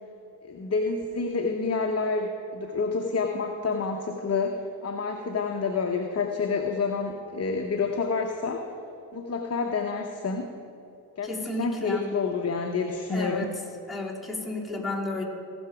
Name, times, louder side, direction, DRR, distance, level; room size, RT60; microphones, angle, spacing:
voice 1, 0.4-8.6 9.1-10.5 11.2-13.5, left 4 dB, 30° left, 3 dB, 1.0 m, -28 dB
voice 2, 11.2-12.0 13.1-13.5 13.9-15.2, left 2 dB, ahead, -4 dB, 3.1 m, -32 dB
18.5 x 6.2 x 4.9 m, 2.8 s
hypercardioid pair, 50°, 49 cm